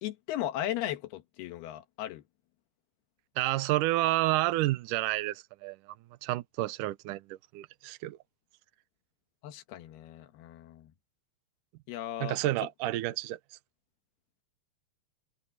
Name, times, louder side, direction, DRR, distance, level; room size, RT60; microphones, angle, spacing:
voice 1, 0.0-2.2 9.4-10.9 11.9-12.4, left 12 dB, 80° left, 3.2 m, -36 dB
voice 2, 3.4-5.8 6.2-8.2 12.2-13.4, right 17 dB, 70° right, 2.1 m, -30 dB
omnidirectional pair, 4.6 m